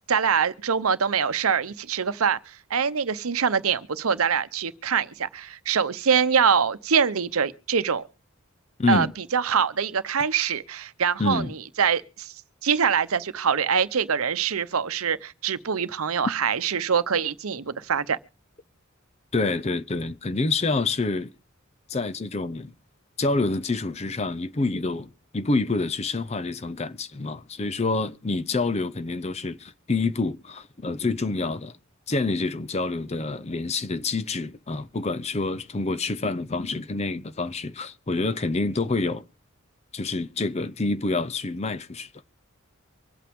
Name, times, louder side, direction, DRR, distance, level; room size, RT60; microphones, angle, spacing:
voice 1, 0.1-8.0 8.9-9.1 9.3-12.3 12.6-18.2, right 6 dB, 90° right, 0.8 m, -24 dB
voice 2, 8.8-9.1 11.2-11.5 19.3-21.3 21.9-22.7 23.2-31.8 32.1-39.3 39.9-42.1, left 3 dB, 30° left, 0.6 m, -27 dB
24.5 x 8.5 x 3.6 m
head